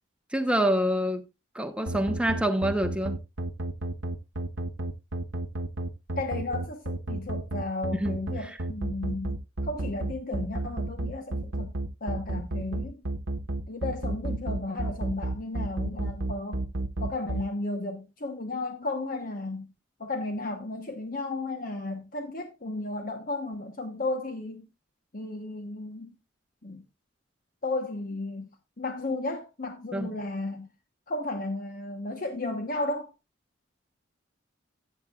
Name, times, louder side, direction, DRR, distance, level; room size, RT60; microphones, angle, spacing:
voice 1, 0.3-1.2 1.5-3.2 8.0-8.2 8.4-8.6 29.9-30.1, right 1 dB, 5° right, 0.9 m, -26 dB
sound 1, 1.9-17.4, right 2 dB, 85° right, 1.0 m, -31 dB
voice 2, 6.2-9.4 9.6-11.7 12.0-13.0 13.7-16.6 17.0-19.7 20.0-24.7 25.1-26.1 26.6-26.8 27.6-28.5 28.8-30.7 31.1-33.1, left 2 dB, 45° left, 1.0 m, -34 dB
14.0 x 8.3 x 2.4 m
head